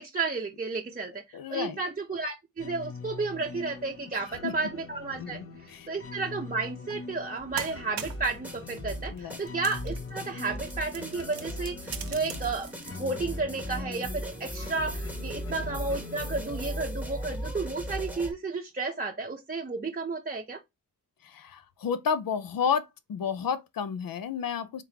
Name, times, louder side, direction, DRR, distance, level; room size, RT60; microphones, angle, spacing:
voice 1, 0.0-20.6, right 3 dB, 25° right, 0.6 m, -32 dB
voice 2, 1.3-1.8 4.1-4.5 5.2-5.9 9.1-9.4 21.2-24.8, left 7 dB, 75° left, 0.6 m, -31 dB
sound 1, 2.6-18.1, left 4 dB, 40° left, 0.8 m, -44 dB
sound 2, 6.9-7.0 7.4-8.3 9.0-10.2 10.6-13.1, right 9 dB, 75° right, 0.7 m, -41 dB
sound 3, 7.4-18.3, equal, 5° right, 1.1 m, -38 dB
3.7 x 3.2 x 2.8 m
cardioid pair, 65°, 35 cm